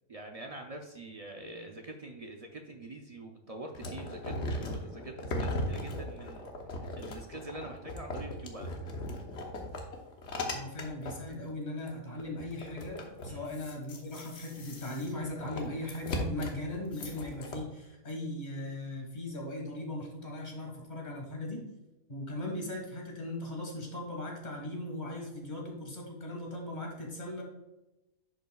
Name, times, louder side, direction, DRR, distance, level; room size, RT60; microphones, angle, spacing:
voice 1, 0.1-6.5 6.8-8.8 13.3-13.5, right 2 dB, 55° right, 2 dB, 0.4 m, -45 dB
sound 1, 3.7-11.3 11.9-12.0 12.2-17.6, left 1 dB, 55° left, 1.2 m, -38 dB
voice 2, 10.5-21.7 22.1-27.4, left 1 dB, 30° left, -1 dB, 1.7 m, -38 dB
10.5 x 5.4 x 2.3 m, 0.98 s
omnidirectional pair, 1.5 m